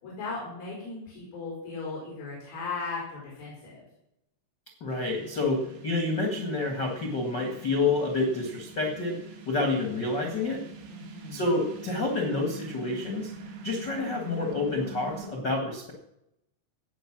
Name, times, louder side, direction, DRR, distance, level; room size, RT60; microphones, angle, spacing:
voice 1, 0.0-3.8 10.9-11.4, left 4 dB, 50° left, -5 dB, 7.3 m, -37 dB
voice 2, 4.8-10.6 11.3-13.3 13.6-15.9, left 3 dB, 75° left, 3 dB, 1.0 m, -28 dB
sound 1, 4.9-15.3, right 4 dB, 90° right, 4.9 m, -45 dB
17.5 x 8.6 x 6.2 m, 0.81 s
omnidirectional pair, 5.5 m